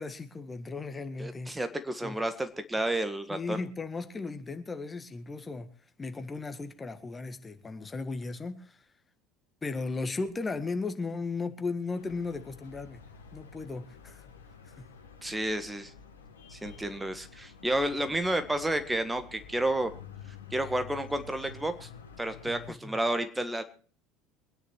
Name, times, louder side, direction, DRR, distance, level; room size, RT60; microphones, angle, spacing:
voice 1, 0.0-1.5 2.0-2.2 2.9-3.0 3.3-5.7 6.0-8.8 9.6-13.0 13.3-14.2 14.6-14.9 22.4-23.0, left 3 dB, 20° left, 9 dB, 1.7 m, -36 dB
voice 2, 1.2-3.6 15.2-15.9 16.5-19.9 20.5-21.9 22.2-23.6, right 1 dB, 10° right, 9 dB, 1.6 m, -31 dB
sound 1, 11.9-22.7, left 5 dB, 80° left, 1.4 m, -49 dB
23.0 x 10.5 x 4.5 m, 0.42 s
figure-of-eight pair, 65°, 0 cm